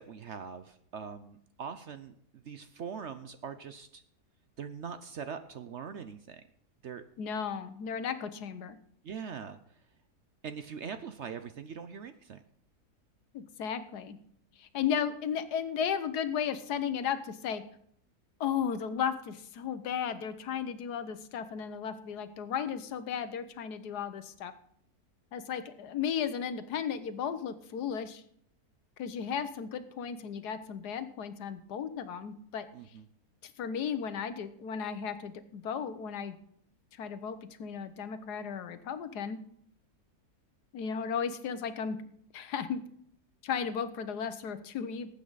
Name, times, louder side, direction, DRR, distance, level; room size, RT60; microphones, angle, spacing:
voice 1, 0.0-2.1 2.4-4.0 4.6-6.4 6.8-7.0 9.0-9.6 10.4-12.4 32.7-33.1, right 6 dB, 60° right, 10 dB, 0.8 m, -42 dB
voice 2, 7.2-8.8 13.3-14.2 14.6-17.6 18.4-24.5 25.3-28.2 29.0-32.7 33.4-36.4 37.0-39.4 40.7-42.0 42.3-42.8 43.4-45.1, left 7 dB, 80° left, 11 dB, 1.4 m, -35 dB
19.0 x 8.4 x 4.0 m, 0.70 s
omnidirectional pair, 1.7 m